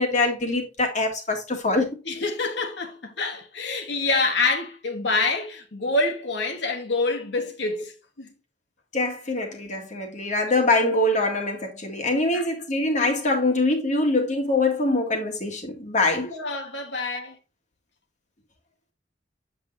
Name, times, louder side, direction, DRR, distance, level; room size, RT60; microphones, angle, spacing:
voice 1, 0.0-1.9 8.9-16.3, left 2 dB, 45° left, 1.6 m, -24 dB
voice 2, 2.0-8.3 12.3-12.5 16.1-17.4, left 3 dB, 75° left, 1.2 m, -27 dB
7.9 x 5.9 x 2.5 m
head